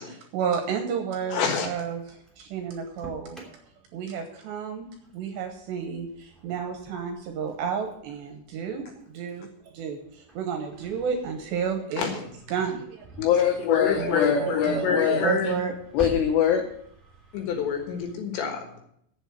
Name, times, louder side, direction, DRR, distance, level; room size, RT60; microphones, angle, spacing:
voice 1, 0.0-3.6 3.9-4.9 5.1-9.5 9.7-13.1 13.9-15.7, right 6 dB, 75° right, 4 dB, 2.7 m, -31 dB
Engine starting, 1.2-18.1, right 3 dB, ahead, 0.6 m, -48 dB
voice 2, 1.3-1.7 12.0-12.1 13.6-15.5 17.3-18.8, left 6 dB, 65° left, 4 dB, 3.4 m, -27 dB
voice 3, 13.2-15.2 15.9-16.7, left 9 dB, 85° left, 6 dB, 2.4 m, -23 dB
8.1 x 8.0 x 8.7 m, 0.70 s
omnidirectional pair, 6.0 m